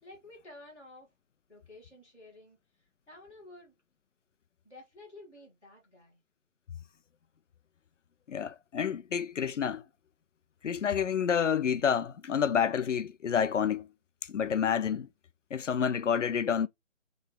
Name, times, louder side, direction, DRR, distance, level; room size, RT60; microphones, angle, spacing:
voice 1, 0.0-1.1 1.5-3.7 4.6-6.2, left 2 dB, ahead, 0.7 m, -52 dB
voice 2, 8.3-9.8 10.6-13.9 14.3-15.1 15.5-16.7, left 7 dB, 75° left, 0.6 m, -29 dB
3.6 x 3.4 x 4.0 m
figure-of-eight pair, 160°, 37 cm